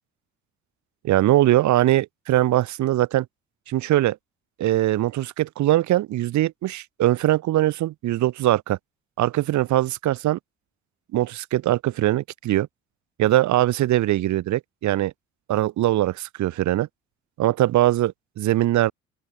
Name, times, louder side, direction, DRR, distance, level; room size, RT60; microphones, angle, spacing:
voice 1, 1.0-3.3 3.7-4.2 4.6-8.8 9.2-10.4 11.1-12.7 13.2-15.1 15.5-16.9 17.4-18.9, right 14 dB, 50° right, 0.8 m, -21 dB
open air
figure-of-eight pair, 45°, 37 cm